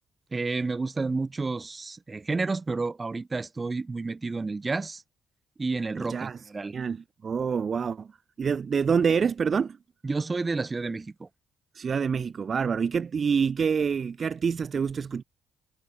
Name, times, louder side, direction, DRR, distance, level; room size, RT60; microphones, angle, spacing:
voice 1, 0.3-5.0 5.6-6.7 10.0-11.3, right 3 dB, 25° right, 3.9 m, -30 dB
voice 2, 5.9-6.4 6.7-8.1 8.4-9.8 11.7-15.2, right 6 dB, 45° right, 2.0 m, -26 dB
cardioid pair, 90°, 0 cm